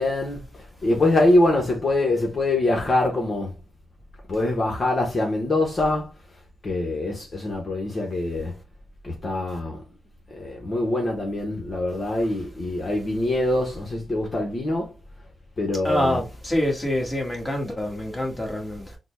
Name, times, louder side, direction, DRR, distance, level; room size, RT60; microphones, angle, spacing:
voice 1, 0.0-3.5 4.3-6.1 6.6-8.5 9.0-9.8 10.3-14.9 15.6-16.2, left 2 dB, 45° left, 1.0 m, -24 dB
voice 2, 15.8-19.0, left 1 dB, 15° left, 1.6 m, -26 dB
3.9 x 2.2 x 3.3 m
cardioid pair, 55°, 0 cm